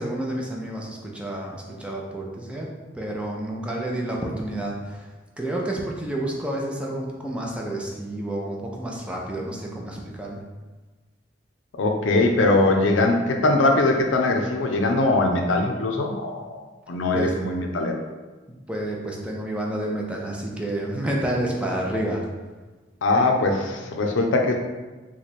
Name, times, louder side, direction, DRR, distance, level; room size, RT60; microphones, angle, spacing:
voice 1, 0.0-2.7 2.9-5.1 5.4-10.4 17.1-17.3 18.7-22.2, right 1 dB, 5° right, -2 dB, 0.4 m, -29 dB
voice 2, 11.8-18.0 23.0-24.5, left 2 dB, 90° left, 2 dB, 0.5 m, -21 dB
3.0 x 2.2 x 4.1 m, 1.3 s
head